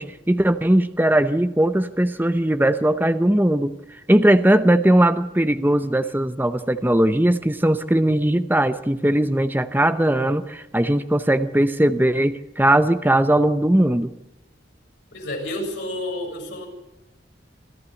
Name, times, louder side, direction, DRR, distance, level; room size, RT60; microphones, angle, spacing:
voice 1, 0.0-3.8 4.1-14.1, right 1 dB, 10° right, 10 dB, 0.7 m, -19 dB
voice 2, 15.1-16.7, left 1 dB, 60° left, 1 dB, 7.2 m, -30 dB
25.5 x 14.0 x 8.4 m, 0.93 s
head